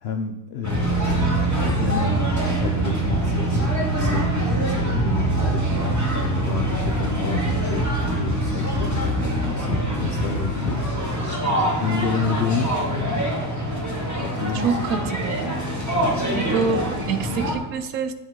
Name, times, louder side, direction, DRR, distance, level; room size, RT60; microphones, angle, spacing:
voice 1, 0.0-7.8 8.1-10.8 11.7-13.3 14.2-14.8, left 5 dB, 90° left, 6 dB, 0.5 m, -30 dB
sound 1, 0.6-17.5, right 1 dB, 10° right, 1.9 m, -24 dB
voice 2, 14.5-15.6 16.3-18.1, right 5 dB, 70° right, 11 dB, 1.0 m, -26 dB
9.1 x 7.9 x 3.7 m, 1.1 s
omnidirectional pair, 1.7 m